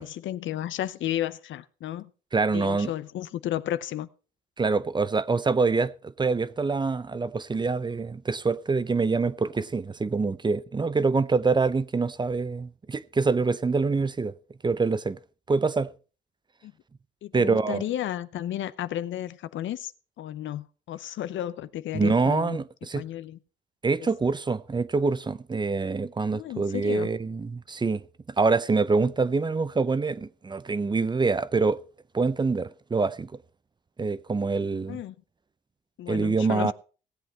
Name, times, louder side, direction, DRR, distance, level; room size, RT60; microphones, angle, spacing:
voice 1, 0.0-2.1 2.5-4.1 16.6-16.7 17.2-19.9 20.2-22.6 22.9-23.4 26.3-27.1 34.9-35.1 36.0-36.7, left 12 dB, 75° left, 0.7 m, -33 dB
voice 2, 2.3-2.9 4.6-14.3 14.6-15.2 15.5-15.9 17.3-17.8 21.9-23.0 23.8-28.0 28.4-31.8 32.1-33.3 34.0-35.0 36.1-36.7, right 4 dB, 20° right, 0.6 m, -25 dB
17.5 x 7.8 x 4.4 m
cardioid pair, 90°, 20 cm